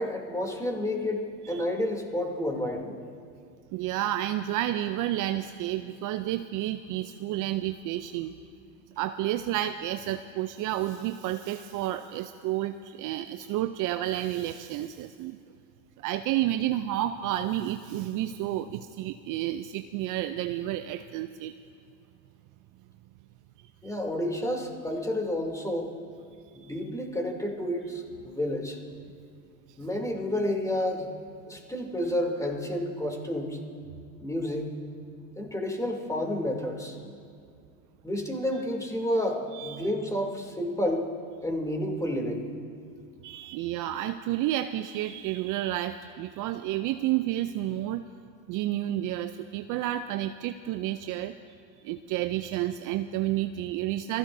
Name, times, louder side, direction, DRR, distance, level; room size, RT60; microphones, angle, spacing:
voice 1, 0.0-3.0 23.8-25.9 26.5-28.8 29.8-31.1 31.5-33.6 34.2-34.7 35.4-37.0 38.0-41.1 41.4-42.4, left 1 dB, 5° left, 1 dB, 3.0 m, -30 dB
voice 2, 3.7-8.3 9.0-15.4 16.0-21.5 23.8-23.9 26.6-26.7 39.5-39.9 43.2-48.0 48.5-51.3 51.8-54.2, right 13 dB, 45° right, 10 dB, 0.6 m, -30 dB
27.5 x 16.5 x 2.7 m, 2.4 s
hypercardioid pair, 90°, 43 cm